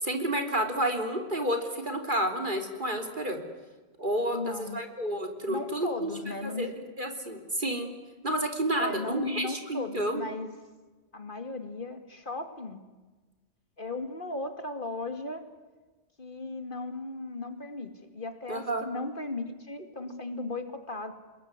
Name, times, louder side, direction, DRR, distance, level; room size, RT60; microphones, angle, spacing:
voice 1, 0.0-3.4 4.0-6.1 6.4-6.7 7.0-7.9 8.2-10.2 18.5-18.9, right 1 dB, 50° right, 5 dB, 3.6 m, -30 dB
voice 2, 4.3-4.8 5.5-6.7 8.8-10.5 11.1-12.8 13.8-15.5 16.2-21.1, left 2 dB, 50° left, 8 dB, 2.5 m, -36 dB
27.0 x 21.5 x 9.8 m, 1.3 s
omnidirectional pair, 1.1 m